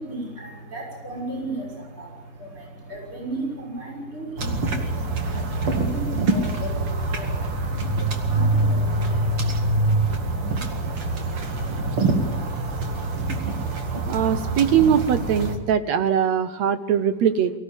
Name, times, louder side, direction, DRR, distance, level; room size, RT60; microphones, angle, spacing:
voice 1, 0.0-9.6, right 2 dB, 15° right, -1 dB, 6.1 m, -36 dB
sound 1, 4.4-15.6, right 2 dB, 45° right, 2.8 m, -24 dB
voice 2, 14.1-17.5, right 8 dB, 70° right, 11 dB, 1.8 m, -21 dB
24.0 x 16.5 x 8.8 m, 1.2 s
omnidirectional pair, 3.8 m